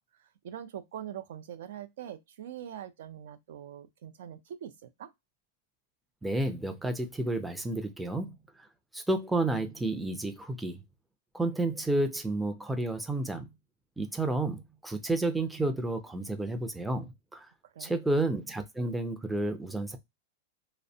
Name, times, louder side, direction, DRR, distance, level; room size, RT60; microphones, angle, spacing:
voice 1, 0.2-5.1 17.6-18.0, right 10 dB, 70° right, 0.4 m, -43 dB
voice 2, 6.2-8.3 8.9-10.8 11.3-13.5 14.0-17.1 17.3-17.5 17.8-20.0, right 2 dB, 5° right, 0.4 m, -31 dB
2.4 x 2.1 x 2.7 m
hypercardioid pair, 135°, 0 cm